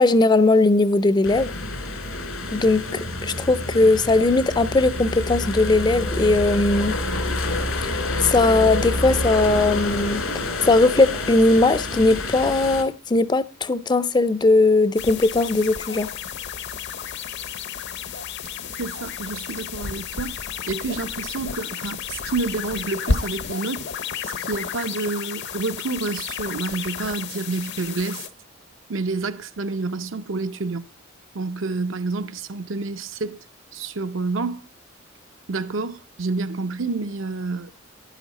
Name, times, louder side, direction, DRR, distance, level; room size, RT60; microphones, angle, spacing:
voice 1, 0.0-1.5 2.5-7.0 7.8-10.2 10.6-16.1, left 2 dB, 20° left, 0.4 m, -19 dB
sound 1, 1.2-12.8, left 2 dB, 85° left, 2.5 m, -28 dB
sound 2, 15.0-28.3, left 6 dB, 60° left, 0.7 m, -32 dB
voice 2, 18.8-20.4 20.7-23.9 24.2-28.3 28.9-30.8 31.3-33.4 33.7-34.6 35.5-37.7, right 3 dB, 70° right, 0.7 m, -28 dB
11.0 x 10.0 x 4.1 m
head